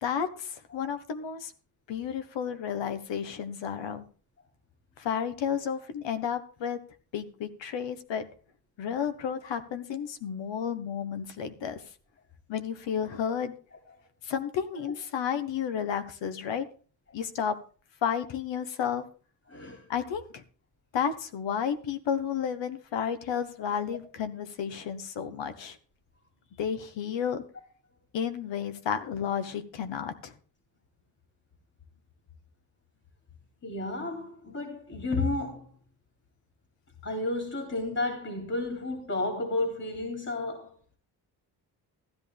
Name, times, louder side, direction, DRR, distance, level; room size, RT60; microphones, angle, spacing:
voice 1, 0.0-1.5 1.9-4.0 5.0-6.8 7.1-8.3 8.8-11.8 12.5-13.5 14.2-16.6 17.1-17.5 18.0-19.0 19.9-20.4 20.9-25.8 26.6-27.4 28.1-30.3, left 8 dB, 85° left, 1.4 m, -32 dB
voice 2, 19.5-19.9 23.6-23.7 33.6-35.7 37.0-41.0, left 2 dB, 35° left, 3.0 m, -32 dB
15.0 x 11.0 x 3.5 m
cardioid pair, 105°, 43 cm